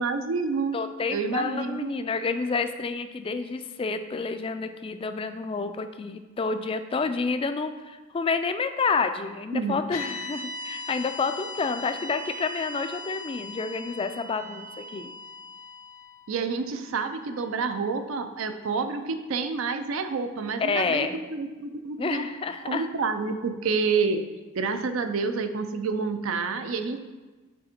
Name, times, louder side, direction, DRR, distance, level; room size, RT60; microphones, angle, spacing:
voice 1, 0.0-0.8 1.1-2.0 9.5-9.8 16.3-22.2 22.7-24.2 24.5-27.0, right 4 dB, 75° right, 8 dB, 0.5 m, -28 dB
voice 2, 0.7-15.1 20.6-21.2 22.0-22.9, left 4 dB, 25° left, 9 dB, 0.3 m, -29 dB
sound 1, 9.9-18.2, left 2 dB, 80° left, 0.9 m, -40 dB
6.3 x 4.3 x 4.3 m, 1.2 s
head